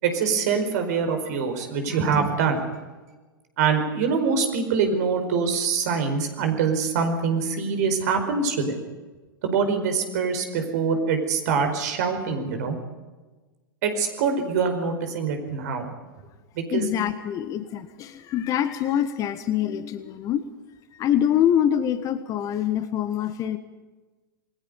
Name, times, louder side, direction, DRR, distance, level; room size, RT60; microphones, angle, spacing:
voice 1, 0.0-2.7 3.6-8.8 9.4-12.8 13.8-15.9 16.5-16.8, right 5 dB, 50° right, 6 dB, 4.8 m, -24 dB
voice 2, 16.7-20.5 21.0-23.6, left 10 dB, 30° left, 13 dB, 1.3 m, -25 dB
28.0 x 21.0 x 5.4 m, 1.2 s
figure-of-eight pair, 100°, 12 cm